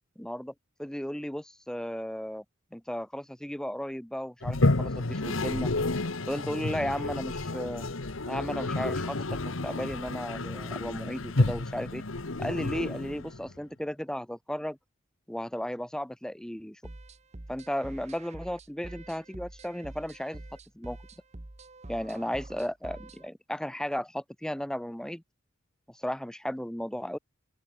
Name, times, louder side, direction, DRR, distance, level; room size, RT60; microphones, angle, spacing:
voice 1, 0.2-0.5 0.8-2.4 2.7-5.7 6.3-7.9 8.3-12.0 12.4-14.8 15.3-16.8 17.5-20.4 20.8-21.0 21.9-25.2 25.9-27.2, equal, 5° left, 0.5 m, -35 dB
Toilet flush, 4.4-13.5, left 2 dB, 75° left, 1.4 m, -30 dB
sound 1, 16.8-23.3, right 2 dB, 30° right, 1.0 m, -46 dB
open air
head